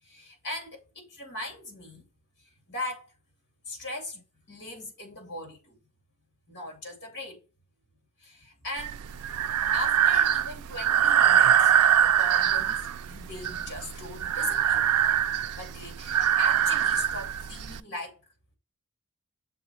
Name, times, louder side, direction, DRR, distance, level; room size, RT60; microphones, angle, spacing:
voice 1, 0.0-2.1 2.4-3.1 3.7-5.8 6.5-7.4 8.2-9.0 9.7-14.9 15.5-18.2, left 1 dB, 50° left, 2.4 m, -39 dB
Breathing, 8.8-17.8, right 9 dB, 90° right, 0.4 m, -23 dB
6.8 x 3.7 x 4.5 m
head